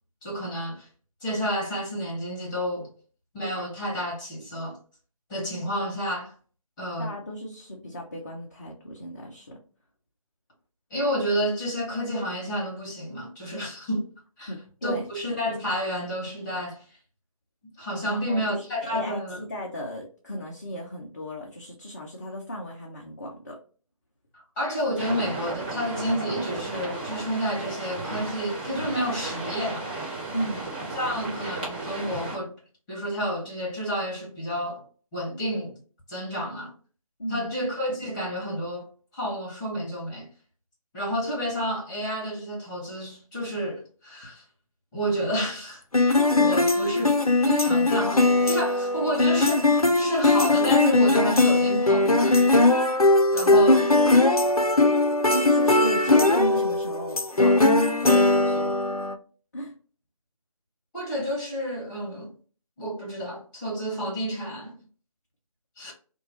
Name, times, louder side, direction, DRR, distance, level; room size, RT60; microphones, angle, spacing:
voice 1, 0.2-0.9 1.2-2.9 3.3-4.8 5.3-6.3 6.8-7.1 10.9-14.1 14.4-14.5 14.8-16.8 17.8-19.4 24.6-29.9 30.9-32.5 32.9-34.8 35.1-35.8 36.1-36.7 37.3-38.9 39.1-40.3 40.9-44.4 44.9-45.8 46.1-47.2 47.4-52.4 53.3-53.8 60.9-62.3 62.8-64.7 65.8-65.9, equal, 10° left, 1.1 m, -30 dB
voice 2, 7.0-9.6 14.5-15.1 18.0-19.2 19.5-23.6 30.3-30.7 37.2-37.6 53.5-53.7 55.3-57.8 58.0-58.8 59.5-59.7, equal, 30° left, 0.5 m, -35 dB
sound 1, 25.0-32.4, right 2 dB, 15° right, 0.7 m, -34 dB
sound 2, 45.9-59.1, left 2 dB, 90° left, 0.6 m, -20 dB
2.9 x 2.3 x 2.7 m
figure-of-eight pair, 155°, 18 cm